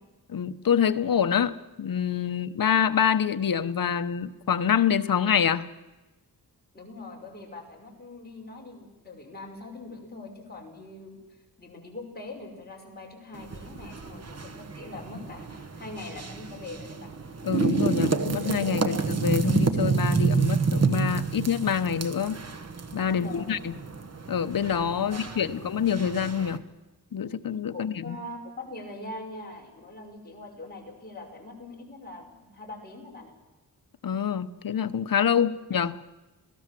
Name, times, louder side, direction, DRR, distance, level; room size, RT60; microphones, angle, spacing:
voice 1, 0.3-5.7 17.4-22.4 22.9-23.7 24.3-26.6 27.1-28.2 34.0-36.0, left 8 dB, 60° left, 12 dB, 1.0 m, -26 dB
voice 2, 6.7-11.2 11.6-17.1 23.1-23.5 25.0-25.6 27.7-33.3, left 2 dB, 25° left, 0 dB, 5.6 m, -42 dB
sound 1, 13.3-26.6, right 4 dB, 40° right, 1.4 m, -29 dB
28.0 x 17.5 x 7.6 m, 1.1 s
wide cardioid pair, 145°, 38 cm